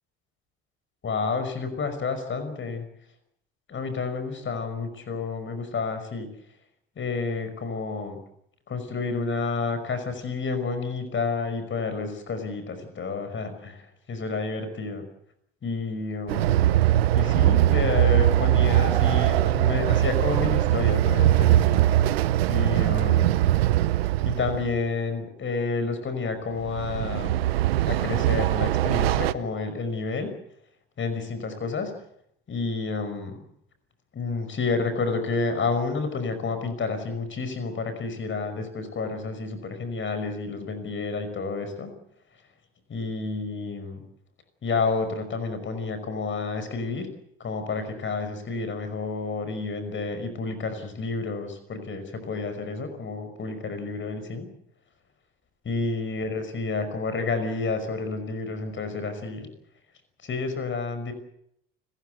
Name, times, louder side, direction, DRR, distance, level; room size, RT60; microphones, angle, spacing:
voice 1, 1.0-2.9 3.7-6.3 7.0-8.2 8.7-13.8 14.1-15.1 15.6-16.6 17.1-21.9 22.5-23.5 24.2-27.4 27.9-30.3 31.0-31.9 32.5-33.4 34.1-41.9 42.9-44.0 44.6-47.1 47.4-54.5 55.6-59.5 60.2-61.1, left 4 dB, 40° left, 9 dB, 5.7 m, -30 dB
Train, 16.3-24.8 26.6-29.3, right 13 dB, 85° right, 0.8 m, -21 dB
30.0 x 15.5 x 8.0 m, 0.74 s
hypercardioid pair, 65°, 30 cm